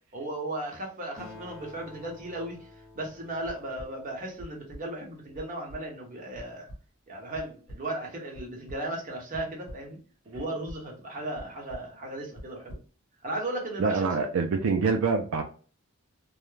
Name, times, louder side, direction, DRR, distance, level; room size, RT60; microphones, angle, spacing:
voice 1, 0.1-2.7 2.9-6.7 7.1-10.0 10.3-12.8 13.2-14.2, right 1 dB, 40° right, -1 dB, 0.9 m, -36 dB
Acoustic guitar, 1.2-5.0, left 3 dB, ahead, 1.0 m, -50 dB
sound 1, 3.5-3.9 4.4-4.8 5.3-5.4 5.7-5.8 6.4-6.5 6.7-6.8 7.3-7.8 8.3-8.8 9.3-9.9 10.3-10.8 11.4-11.5 11.7-11.9 12.4-12.8, equal, 50° left, 0.9 m, -42 dB
voice 2, 13.8-15.4, right 4 dB, 80° right, 4 dB, 0.4 m, -25 dB
2.3 x 2.0 x 3.1 m, 0.39 s
head